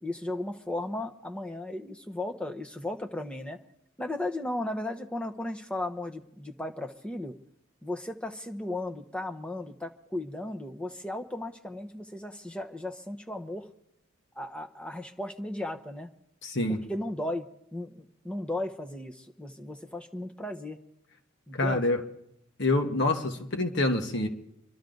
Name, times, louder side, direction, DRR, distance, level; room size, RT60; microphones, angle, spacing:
voice 1, 0.0-3.6 4.0-7.3 7.8-13.7 14.4-16.1 16.7-20.8 21.5-22.0, left 1 dB, 5° left, 4 dB, 1.0 m, -35 dB
voice 2, 16.4-16.8 21.5-22.0 22.6-24.3, left 2 dB, 55° left, 4 dB, 1.5 m, -26 dB
26.5 x 12.0 x 3.9 m, 0.77 s
head